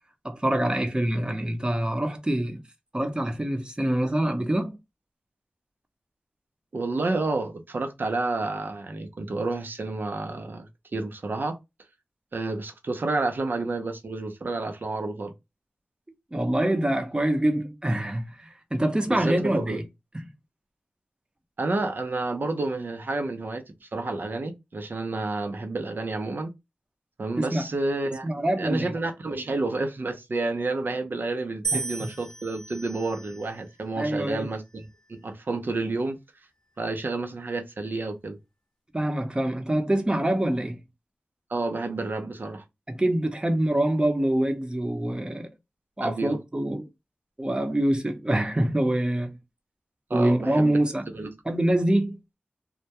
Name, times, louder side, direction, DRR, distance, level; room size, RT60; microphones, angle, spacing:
voice 1, 0.2-2.6 2.9-4.7 16.3-19.8 20.1-20.2 27.4-27.7 28.2-28.9 31.7-31.8 34.0-34.5 38.9-40.8 42.9-45.5 46.0-46.9 47.4-49.4 50.1-51.1 51.4-52.2, right 1 dB, 25° right, 0.7 m, -25 dB
voice 2, 6.7-11.6 12.3-15.3 19.1-19.8 21.6-26.5 27.2-28.3 28.6-36.2 36.8-38.4 41.5-42.6 46.0-46.4 50.1-50.8 51.1-51.3, right 2 dB, 60° right, 0.6 m, -30 dB
sound 1, 31.6-33.9 34.7-35.2, right 4 dB, 10° left, 0.8 m, -35 dB
2.2 x 2.2 x 2.8 m
cardioid pair, 40°, 4 cm